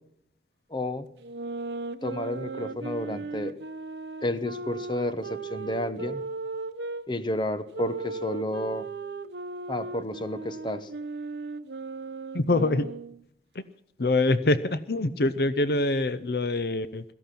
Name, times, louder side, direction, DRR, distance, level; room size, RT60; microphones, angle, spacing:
voice 1, 0.7-1.1 2.0-3.6 4.2-6.2 7.1-8.9 9.7-10.9, left 1 dB, 25° left, 12 dB, 1.0 m, -31 dB
sound 1, 1.2-7.0 7.7-13.2, right 3 dB, 80° right, 0.9 m, -36 dB
voice 2, 12.3-12.9 13.5-13.6 14.0-17.0, left 2 dB, 60° left, 14 dB, 0.7 m, -25 dB
17.0 x 14.5 x 5.9 m, 0.73 s
head